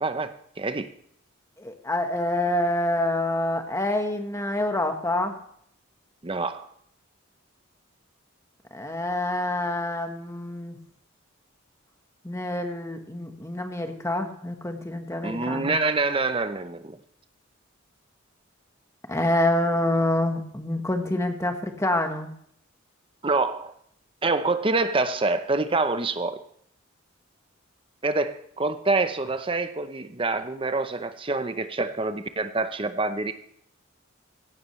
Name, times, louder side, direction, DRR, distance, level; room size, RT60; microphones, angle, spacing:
voice 1, 0.0-0.9 6.2-6.7 15.2-16.9 23.2-23.7 24.2-26.4 28.0-33.3, right 3 dB, 25° right, 10 dB, 0.7 m, -26 dB
voice 2, 1.6-5.4 8.7-10.8 12.2-15.8 19.1-22.3, left 1 dB, 15° left, 5 dB, 1.3 m, -27 dB
17.0 x 12.5 x 3.2 m, 0.68 s
head